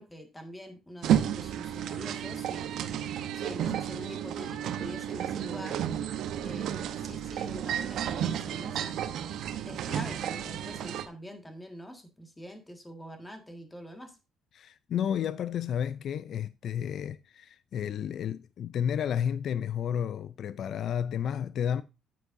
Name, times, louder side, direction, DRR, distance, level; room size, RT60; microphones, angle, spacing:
voice 1, 0.0-2.7 3.3-5.8 6.4-9.0 9.6-14.2, equal, 10° left, 1.7 m, -44 dB
sound 1, 1.0-11.1, right 10 dB, 70° right, 0.8 m, -32 dB
voice 2, 14.5-21.8, left 9 dB, 55° left, 0.3 m, -31 dB
9.2 x 9.1 x 2.6 m
cardioid pair, 130°, 0 cm